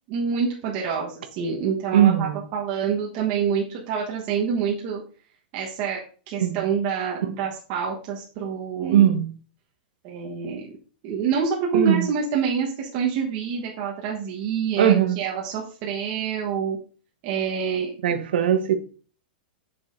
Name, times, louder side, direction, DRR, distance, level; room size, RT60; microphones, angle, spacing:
voice 1, 0.1-5.0 5.5-6.0 6.3-9.1 10.0-10.6 11.0-16.8 17.2-18.2, right 6 dB, 35° right, 1.2 m, -27 dB
voice 2, 1.9-2.4 6.4-6.6 8.9-9.3 11.7-12.1 14.8-15.2 18.0-18.8, right 10 dB, 75° right, 0.9 m, -19 dB
8.6 x 6.2 x 2.6 m
supercardioid pair, 165°, 5 cm